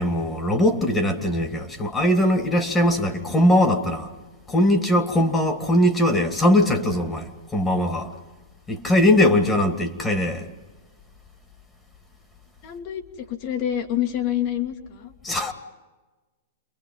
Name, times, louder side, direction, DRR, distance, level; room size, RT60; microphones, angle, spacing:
voice 1, 0.0-4.1 4.5-8.1 8.7-10.4 15.2-15.5, left 1 dB, 15° left, 2.6 m, -20 dB
voice 2, 12.6-15.1, left 11 dB, 50° left, 2.7 m, -27 dB
29.5 x 23.0 x 5.6 m
hypercardioid pair, 110°, 0 cm